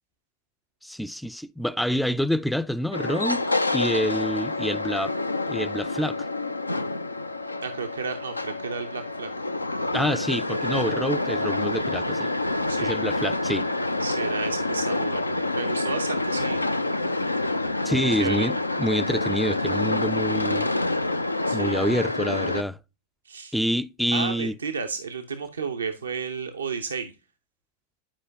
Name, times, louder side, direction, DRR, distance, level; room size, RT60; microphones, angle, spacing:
voice 1, 0.8-5.1 5.5-6.2 9.9-12.3 12.8-13.7 17.8-20.7 21.5-22.8 23.5-24.5, equal, ahead, 0.3 m, -27 dB
sound 1, 2.9-22.6, left 2 dB, 85° left, 0.4 m, -27 dB
voice 2, 7.6-9.3 12.7-12.9 14.0-16.6 17.1-17.2 18.0-18.5 21.5-21.8 23.3-23.5 24.1-27.1, right 5 dB, 75° right, 0.7 m, -32 dB
10.0 x 4.9 x 2.7 m
figure-of-eight pair, 90°, 0 cm